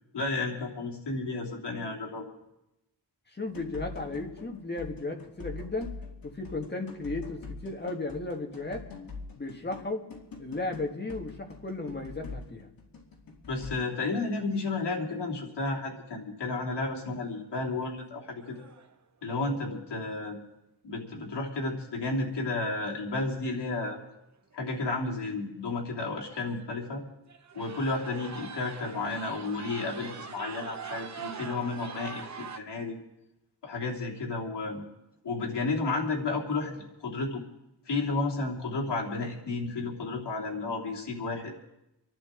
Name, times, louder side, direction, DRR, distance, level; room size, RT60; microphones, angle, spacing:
voice 1, 0.1-2.2 13.5-18.6 19.2-20.4 20.8-24.0 24.5-27.0 27.5-33.0 33.6-34.8 35.2-37.4 37.9-41.6, left 3 dB, 70° left, -3 dB, 3.1 m, -32 dB
voice 2, 3.3-5.9 6.2-8.9 9.4-10.0 10.4-12.7, left 2 dB, 25° left, 2 dB, 1.6 m, -35 dB
sound 1, 3.4-13.8, left 4 dB, 50° left, 2.1 m, -44 dB
sound 2, 17.0-17.4 17.9-18.0 18.4-18.9 22.1-22.2 23.3-23.4 23.7-24.0 24.5-24.6 25.3-25.4 25.7-25.8 26.3-26.7 27.3-32.6, right 5 dB, 40° right, 0.8 m, -43 dB
26.5 x 11.5 x 3.8 m, 0.90 s
wide cardioid pair, 175°, 43 cm